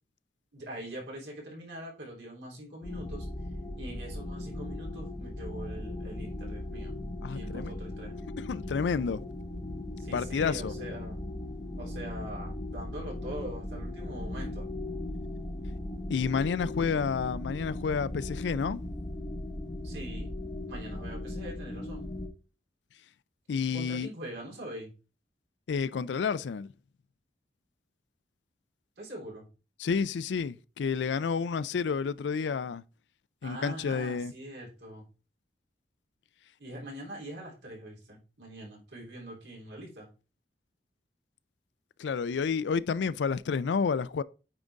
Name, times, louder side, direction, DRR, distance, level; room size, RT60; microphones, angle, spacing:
voice 1, 0.5-3.3 3.8-7.0 7.3-8.1 10.0-11.2 11.8-14.7 19.8-20.3 20.7-22.1 23.7-24.9 29.0-29.5 33.4-35.0 36.6-40.1, right 1 dB, 85° right, 3.5 m, -43 dB
sound 1, 2.8-22.3, left 1 dB, 20° left, 0.7 m, -38 dB
voice 2, 7.2-7.7 8.5-9.2 10.1-10.7 16.1-18.8 23.5-24.1 25.7-26.7 29.8-32.8 33.4-34.3 42.0-44.2, left 5 dB, 85° left, 0.4 m, -30 dB
8.9 x 3.9 x 3.5 m
head